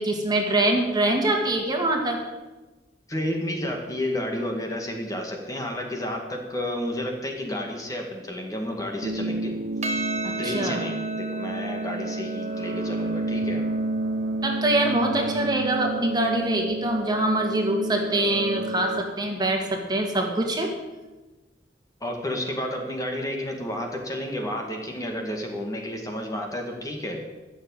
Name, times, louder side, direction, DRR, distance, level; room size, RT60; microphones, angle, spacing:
voice 1, 0.0-2.2 10.2-10.8 14.4-20.7, right 1 dB, 25° right, 1 dB, 2.0 m, -24 dB
voice 2, 3.1-9.5 10.4-13.7 22.0-27.2, left 1 dB, 20° left, 2 dB, 1.9 m, -31 dB
sound 1, 9.0-19.0, right 2 dB, 80° right, 0.8 m, -30 dB
Percussion, 9.8-14.4, right 3 dB, 40° right, 1.1 m, -35 dB
13.5 x 7.2 x 8.9 m, 1.1 s
head